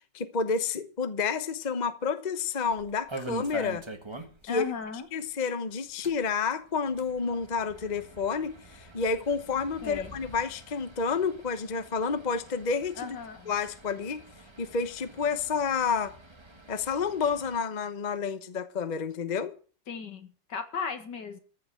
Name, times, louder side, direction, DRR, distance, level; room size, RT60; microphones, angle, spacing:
voice 1, 0.1-3.8 4.4-4.6 5.1-13.2 13.5-14.2 14.6-16.1 16.7-19.5, left 5 dB, 30° left, 0.9 m, -30 dB
sound 1, 2.7-4.6 4.9-5.0 5.3-5.4 5.9-17.6, right 2 dB, 15° right, 1.6 m, -45 dB
voice 2, 4.5-5.1 9.8-10.1 13.0-13.5 19.9-21.4, left 6 dB, 70° left, 2.3 m, -36 dB
14.5 x 6.0 x 8.8 m
omnidirectional pair, 2.0 m